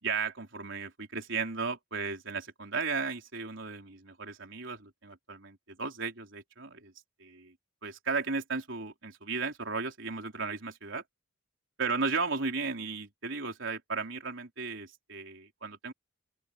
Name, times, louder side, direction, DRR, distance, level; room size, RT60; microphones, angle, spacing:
voice 1, 0.0-6.9 7.2-7.5 7.8-11.0 11.8-15.9, right 4 dB, 65° right, 3.7 m, -35 dB
open air
head